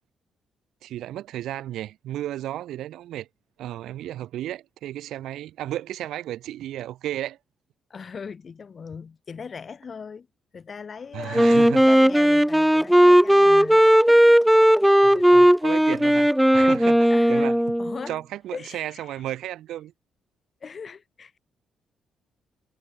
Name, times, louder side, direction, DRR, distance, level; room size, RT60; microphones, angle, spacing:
voice 1, 0.8-3.3 3.6-7.4 11.1-11.9 15.0-17.6 18.1-19.9, right 13 dB, 85° right, 3.8 m, -33 dB
voice 2, 7.9-10.3 10.5-14.4 15.1-15.6 17.1-18.2 18.5-19.3 20.6-21.4, left 6 dB, 35° left, 7.7 m, -40 dB
Wind instrument woodwind instrument, 11.3-18.0, equal, ahead, 1.0 m, -16 dB
cardioid pair, 130°, 0 cm